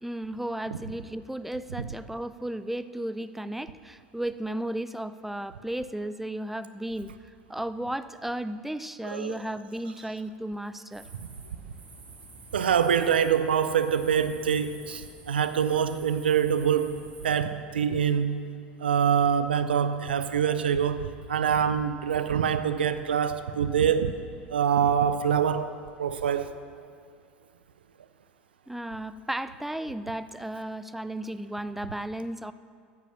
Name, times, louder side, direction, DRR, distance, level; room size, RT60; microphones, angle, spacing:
voice 1, 0.0-11.1 28.7-32.5, right 1 dB, 5° right, 13 dB, 0.4 m, -34 dB
sound 1, 10.9-17.3, right 3 dB, 25° right, 1.9 m, -49 dB
voice 2, 12.5-18.5 18.8-24.1 24.5-25.7 26.0-26.5, right 8 dB, 80° right, 11 dB, 0.5 m, -25 dB
9.4 x 7.3 x 6.0 m, 2.2 s
figure-of-eight pair, 75°, 5 cm